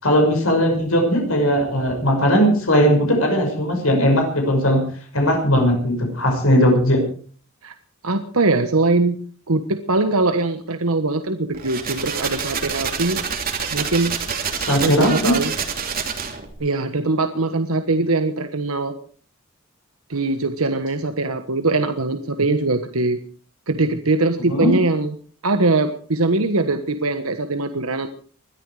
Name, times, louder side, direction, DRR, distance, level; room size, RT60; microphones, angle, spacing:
voice 1, 0.0-4.8 5.1-7.0 14.5-15.3 24.5-24.7, equal, 75° left, 2 dB, 6.1 m, -18 dB
voice 2, 8.0-9.2 9.5-13.2 13.7-14.2 14.8-15.5 16.6-19.0 20.1-23.2 23.7-25.1 25.4-28.1, right 3 dB, 85° right, 8 dB, 1.3 m, -21 dB
sound 1, 11.5-16.5, right 6 dB, 45° right, 3.0 m, -27 dB
21.0 x 13.5 x 4.9 m, 0.44 s
head